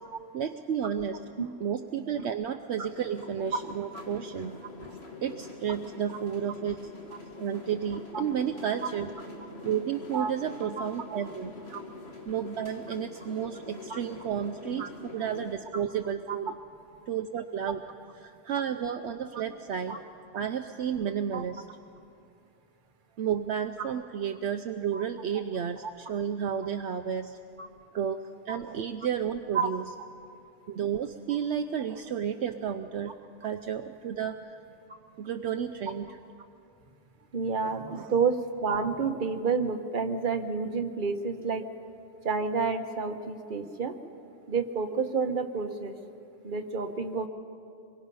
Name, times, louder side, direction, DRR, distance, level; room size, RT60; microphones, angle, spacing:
voice 1, 0.3-1.2 1.6-4.5 5.2-6.9 7.4-9.1 9.6-11.5 12.3-16.5 17.1-17.8 18.2-21.7 23.2-27.4 27.9-29.8 30.7-33.1 33.4-34.4 35.2-36.2 37.9-38.1, right 8 dB, 70° right, 7 dB, 0.9 m, -32 dB
sound 1, 2.8-15.5, left 3 dB, 60° left, 2.2 m, -45 dB
voice 2, 37.3-41.7 42.2-44.0 44.5-45.9 46.4-47.3, right 5 dB, 45° right, 5 dB, 1.3 m, -29 dB
26.0 x 22.5 x 5.5 m, 2.6 s
omnidirectional pair, 1.2 m